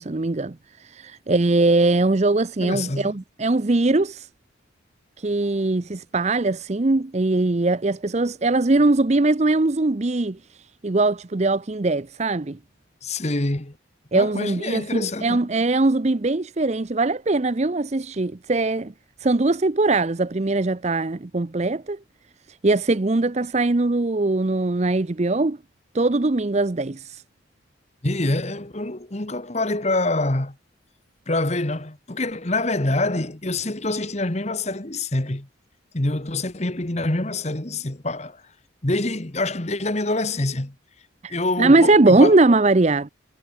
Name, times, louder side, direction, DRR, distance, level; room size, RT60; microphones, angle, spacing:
voice 1, 0.0-4.3 5.2-12.6 14.1-18.9 19.2-22.0 22.5-25.6 25.9-27.2 41.2-43.1, right 2 dB, 35° right, 0.6 m, -21 dB
voice 2, 2.6-3.1 13.0-13.8 14.1-15.5 28.0-30.5 31.3-35.5 35.9-38.4 38.8-40.7 41.3-42.4, left 2 dB, 35° left, 1.5 m, -26 dB
head